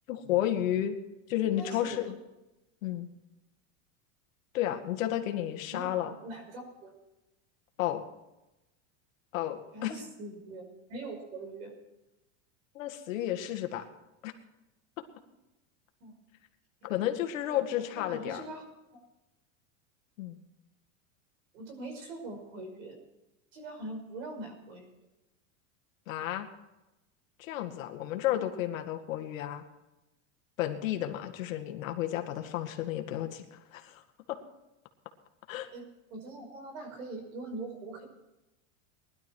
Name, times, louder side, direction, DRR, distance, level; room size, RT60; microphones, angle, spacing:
voice 1, 0.1-1.0 1.3-2.2 2.8-3.1 4.5-6.1 7.8-8.0 9.3-9.9 12.7-13.9 14.2-14.3 16.8-18.4 20.2-20.4 26.1-26.5 27.4-29.6 30.6-34.0 34.3-34.4 35.5-35.7, left 12 dB, 80° left, 6 dB, 2.0 m, -32 dB
voice 2, 1.4-2.0 5.7-7.0 9.7-11.7 16.0-16.2 17.5-18.6 18.9-19.0 21.5-23.0 23.5-24.9 35.6-38.0, right 2 dB, 75° right, 5 dB, 5.5 m, -43 dB
20.5 x 12.0 x 4.6 m, 0.97 s
supercardioid pair, 180°, 39 cm